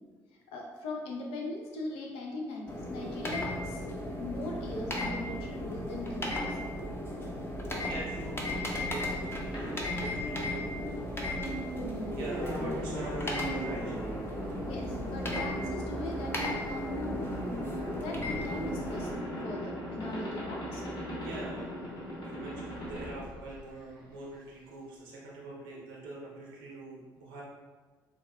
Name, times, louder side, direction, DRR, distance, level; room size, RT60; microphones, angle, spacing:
voice 1, 0.5-3.8 4.2-6.7 14.6-17.2 17.9-19.1 19.4-20.8, left 2 dB, 70° left, 0 dB, 0.6 m, -39 dB
sound 1, 2.7-19.1, left 1 dB, 25° left, 0.7 m, -36 dB
sound 2, 3.3-15.3, right 1 dB, 15° right, 0.6 m, -46 dB
voice 2, 7.8-9.7 10.0-10.7 11.1-11.5 12.1-14.2 21.2-21.7 22.2-27.4, right 2 dB, 70° right, -4 dB, 0.7 m, -44 dB
sound 3, 9.5-24.1, equal, 40° left, 1.1 m, -38 dB
3.9 x 2.3 x 2.3 m, 1.4 s
hypercardioid pair, 50°, 10 cm